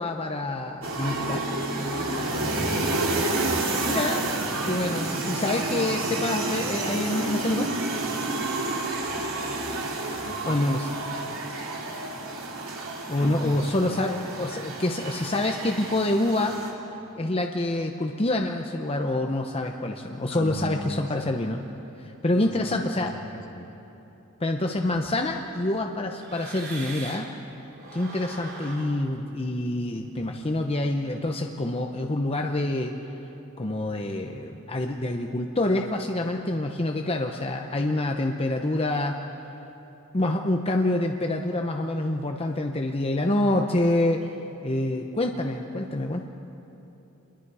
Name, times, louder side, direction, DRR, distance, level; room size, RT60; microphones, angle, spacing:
voice 1, 0.0-1.4 3.9-4.2 4.6-7.7 10.5-10.9 13.1-16.6 17.2-21.6 22.0-23.2 24.4-27.3 27.9-33.0 33.6-39.2 40.1-44.3 44.6-46.3, left 1 dB, 30° left, 3 dB, 0.8 m, -26 dB
sound 1, 0.8-16.7, right 2 dB, 70° right, 2.9 m, -30 dB
voice 2, 2.1-3.3 10.2-10.7 13.2-13.7 20.3-21.3 22.3-23.7, left 1 dB, 60° left, 2 dB, 2.0 m, -37 dB
sound 2, 24.8-27.4 27.7-30.8, right 3 dB, 50° right, 3.0 m, -43 dB
28.0 x 22.0 x 4.9 m, 3.0 s
head